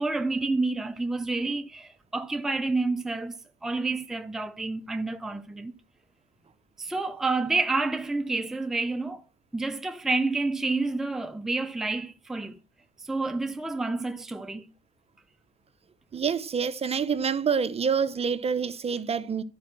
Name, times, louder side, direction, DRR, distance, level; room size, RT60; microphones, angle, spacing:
voice 1, 0.0-5.7 6.8-9.2 9.5-12.6 13.0-14.7, right 3 dB, ahead, 0.6 m, -29 dB
voice 2, 16.1-19.4, right 6 dB, 30° right, 0.8 m, -27 dB
12.0 x 5.0 x 6.0 m
cardioid pair, 115°, 20 cm